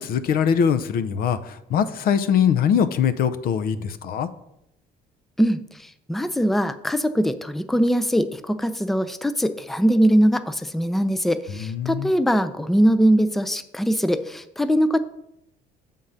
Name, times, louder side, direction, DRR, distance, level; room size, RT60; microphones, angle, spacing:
voice 1, 0.0-1.4 1.7-4.3 11.5-12.1, left 7 dB, 60° left, 13 dB, 0.6 m, -22 dB
voice 2, 6.1-15.0, equal, ahead, 11 dB, 0.4 m, -21 dB
7.6 x 3.7 x 5.5 m, 0.82 s
cardioid pair, 110°, 17 cm